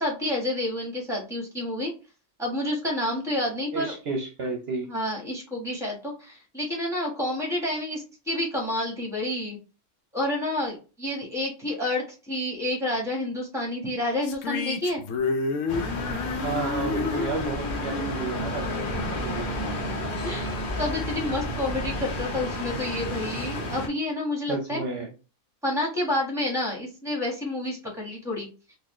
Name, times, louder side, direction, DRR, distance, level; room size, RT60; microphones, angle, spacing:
voice 1, 0.0-1.9 2.4-3.9 4.9-9.6 10.1-15.0 19.7-20.5 20.8-24.8 25.6-28.5, left 1 dB, ahead, -1 dB, 1.2 m, -29 dB
voice 2, 3.7-4.9 16.4-19.5 24.5-25.1, right 4 dB, 60° right, 0 dB, 0.8 m, -32 dB
sound 1, 14.2-19.6, left 4 dB, 80° left, 0.9 m, -31 dB
sound 2, 15.7-23.9, left 1 dB, 45° left, 0.9 m, -31 dB
4.0 x 2.4 x 3.0 m, 0.33 s
omnidirectional pair, 1.3 m